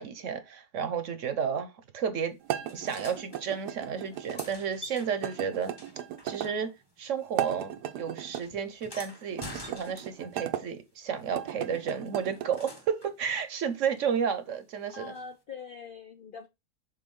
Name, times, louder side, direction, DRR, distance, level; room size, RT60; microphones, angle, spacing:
voice 1, 0.0-2.4 2.7-5.7 6.2-6.7 7.0-15.1, right 7 dB, 60° right, 1.0 m, -32 dB
sound 1, 2.4-4.5 5.2-6.5 7.2-8.5 9.3-10.6 11.2-12.6, right 11 dB, 85° right, 1.3 m, -36 dB
sound 2, 2.7-3.4 4.0-7.0 7.3-10.4 11.9-13.2 15.1-15.2, left 1 dB, 15° left, 1.1 m, -47 dB
voice 2, 14.9-16.5, left 5 dB, 70° left, 0.5 m, -43 dB
6.8 x 3.9 x 3.6 m
omnidirectional pair, 1.7 m